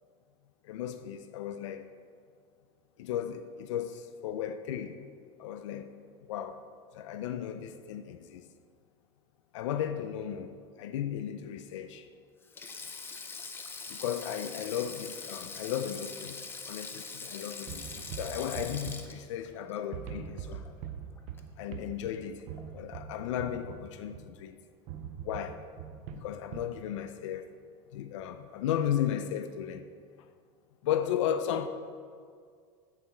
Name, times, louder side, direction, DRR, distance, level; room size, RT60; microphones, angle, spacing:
voice 1, 0.6-1.9 3.0-5.1 5.4-5.9 6.3-6.6 6.9-8.4 9.5-12.1 13.9-20.7 21.6-22.4 22.7-24.6 25.2-25.6 26.1-27.5 27.9-29.9 30.8-31.7, left 10 dB, 85° left, 0.4 m, -35 dB
Sink (filling or washing), 12.4-20.9 21.2-21.4 22.6-22.8, left 4 dB, 15° left, 0.5 m, -43 dB
sound 1, 17.7-19.6 19.9-24.4 24.9-26.8, right 8 dB, 50° right, 0.5 m, -43 dB
8.6 x 4.0 x 4.4 m
supercardioid pair, 130°, 15 cm